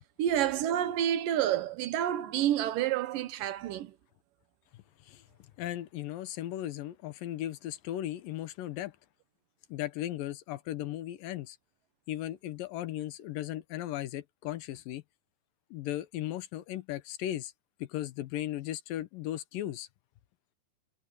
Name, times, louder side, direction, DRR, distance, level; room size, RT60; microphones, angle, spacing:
voice 1, 0.2-3.9, right 11 dB, 75° right, 2.6 m, -29 dB
voice 2, 4.7-5.2 5.6-8.9 9.7-11.6 12.1-15.0 15.7-17.5 17.8-19.9, left 13 dB, 80° left, 2.6 m, -37 dB
omnidirectional pair, 4.1 m